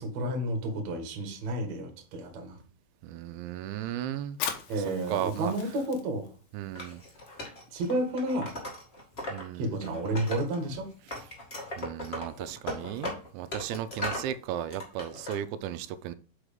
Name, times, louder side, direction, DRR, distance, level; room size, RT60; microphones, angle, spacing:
voice 1, 0.0-2.6 4.7-6.3 7.7-8.5 9.6-10.9, right 1 dB, 55° right, 2.2 m, -31 dB
voice 2, 3.0-4.4 5.1-5.5 6.5-7.0 9.3-9.8 11.8-16.1, right 11 dB, 90° right, 3.0 m, -35 dB
Fire, 4.3-11.5, left 8 dB, 70° left, 2.4 m, -43 dB
Wood, 6.7-9.4 9.7-10.8 11.1-14.3 14.7-15.4, left 1 dB, 45° left, 0.7 m, -38 dB
6.2 x 5.4 x 5.1 m
omnidirectional pair, 5.2 m